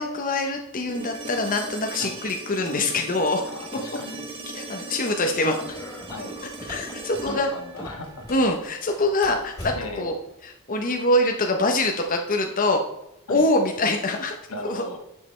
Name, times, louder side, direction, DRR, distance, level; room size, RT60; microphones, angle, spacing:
voice 1, 0.0-3.5 4.5-5.6 6.6-7.5 8.3-10.1 10.4-12.8 13.3-14.3 14.6-14.9, left 2 dB, 40° left, 3 dB, 0.7 m, -24 dB
sound 1, 0.9-8.9 11.1-11.2, right 2 dB, 25° right, 1.0 m, -39 dB
voice 2, 3.5-4.2 6.1-6.3 7.3-8.3 9.7-10.1 13.3-13.5 14.5-15.0, left 2 dB, 80° left, 3 dB, 1.5 m, -36 dB
sound 2, 5.6-8.5 8.8-10.1, equal, 20° left, 3.3 m, -40 dB
10.0 x 6.5 x 3.2 m, 0.86 s
head